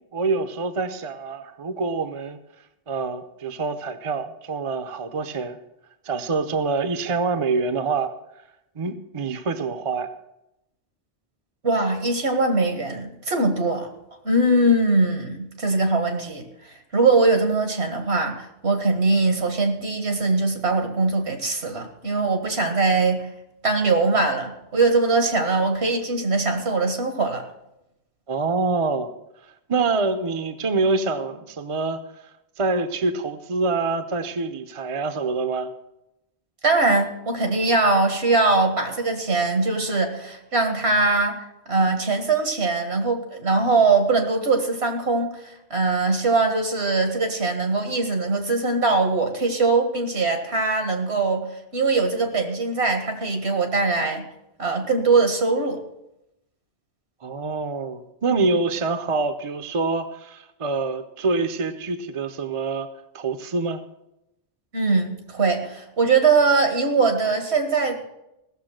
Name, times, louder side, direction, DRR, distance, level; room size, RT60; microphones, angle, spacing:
voice 1, 0.1-2.4 2.9-5.6 6.0-8.1 8.8-10.1 28.3-29.1 29.7-32.0 32.6-35.7 57.2-62.9 63.1-63.8, right 3 dB, 35° right, 8 dB, 0.7 m, -25 dB
voice 2, 11.6-13.9 14.2-16.4 16.9-23.3 23.6-27.4 36.6-54.3 54.6-55.8 64.7-68.0, right 3 dB, 80° right, 5 dB, 2.0 m, -21 dB
16.5 x 6.9 x 6.4 m, 0.86 s
omnidirectional pair, 1.1 m